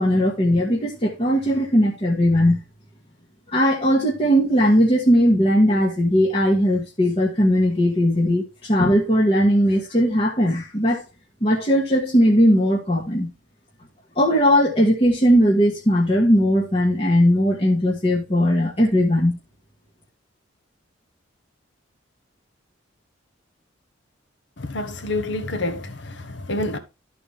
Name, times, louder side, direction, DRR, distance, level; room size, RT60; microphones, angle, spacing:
voice 1, 0.0-2.6 3.5-11.0 11.4-13.3 14.2-19.3, equal, 30° left, 1.4 m, -18 dB
voice 2, 24.6-26.8, left 2 dB, 65° left, 1.2 m, -28 dB
13.0 x 4.4 x 3.4 m
head